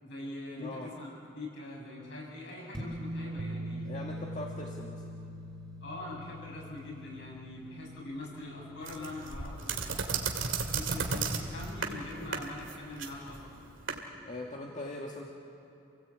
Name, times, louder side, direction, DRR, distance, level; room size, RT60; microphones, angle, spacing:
voice 1, 0.0-3.9 5.8-10.3 10.7-13.6, left 1 dB, 65° left, -3 dB, 7.4 m, -43 dB
voice 2, 0.6-0.9 3.8-5.0 14.2-15.3, left 1 dB, 40° left, -2 dB, 2.0 m, -41 dB
sound 1, 2.7-9.3, right 2 dB, 5° left, 3.7 m, -43 dB
sound 2, 3.4-9.6, left 4 dB, 55° right, 0.8 m, -47 dB
sound 3, 8.8-14.0, right 5 dB, 80° right, 2.3 m, -34 dB
28.0 x 17.5 x 8.6 m, 2.8 s
head